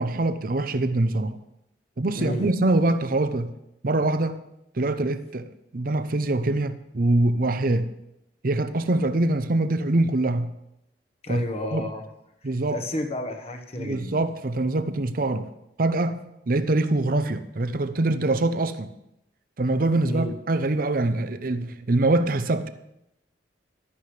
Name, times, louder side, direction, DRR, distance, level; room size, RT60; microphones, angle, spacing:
voice 1, 0.0-1.4 2.0-3.5 3.8-4.4 4.7-7.9 8.4-10.5 11.3-11.9 12.4-12.8 13.8-15.5 15.8-18.9 19.6-22.7, right 2 dB, 55° right, 11 dB, 0.6 m, -24 dB
voice 2, 2.1-2.5 11.2-12.1 12.4-14.2 20.0-20.3, left 1 dB, 35° left, 5 dB, 1.2 m, -31 dB
15.0 x 11.5 x 3.3 m, 0.84 s
head